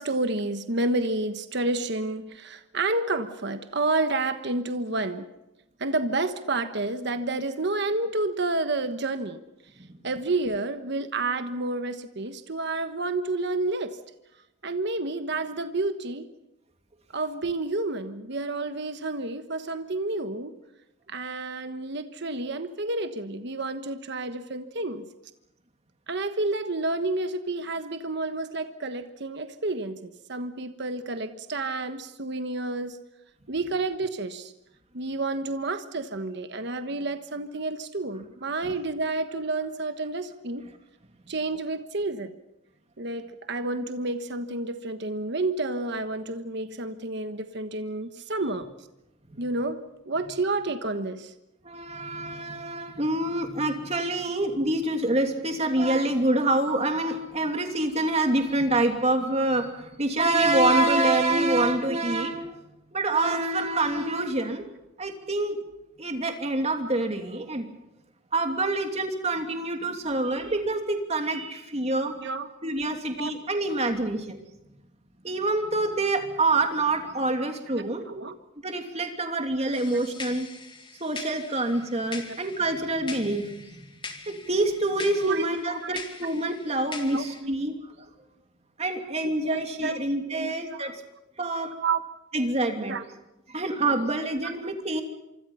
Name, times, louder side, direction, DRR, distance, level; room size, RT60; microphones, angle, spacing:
voice 1, 0.0-5.3 5.8-9.4 10.0-14.0 14.6-16.3 17.1-20.5 21.1-25.1 26.1-33.0 33.5-34.5 34.9-40.6 41.3-42.3 43.0-48.7 49.4-51.3 72.2-72.5 73.1-73.3 77.7-78.3 82.3-82.4 85.2-85.9 87.1-87.5 89.2-90.0 90.3-90.5 90.8-90.9 91.8-92.0 92.9-93.0 94.4-94.5, right 2 dB, 60° right, 9 dB, 1.3 m, -30 dB
voice 2, 51.6-62.5 62.9-64.6 65.0-65.6 66.0-67.7 68.3-72.2 72.6-74.4 75.2-78.1 78.6-80.5 81.0-83.8 84.3-87.7 88.8-90.9 91.4-91.8 92.3-93.0 93.5-95.0, right 2 dB, 30° right, 4 dB, 2.9 m, -26 dB
sound 1, 79.7-87.4, left 4 dB, 25° left, 2.3 m, -42 dB
26.5 x 25.0 x 5.7 m, 0.91 s
head